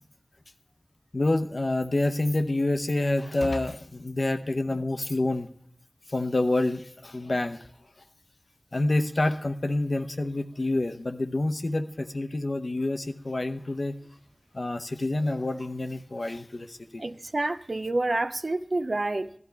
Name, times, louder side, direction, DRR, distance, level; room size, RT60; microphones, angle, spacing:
voice 1, 1.1-5.5 6.1-7.6 8.7-13.9 14.5-17.0, left 2 dB, 65° left, 0.8 m, -27 dB
voice 2, 17.0-19.3, right 2 dB, 60° right, 0.5 m, -28 dB
15.5 x 12.0 x 3.4 m
wide cardioid pair, 45°, 0 cm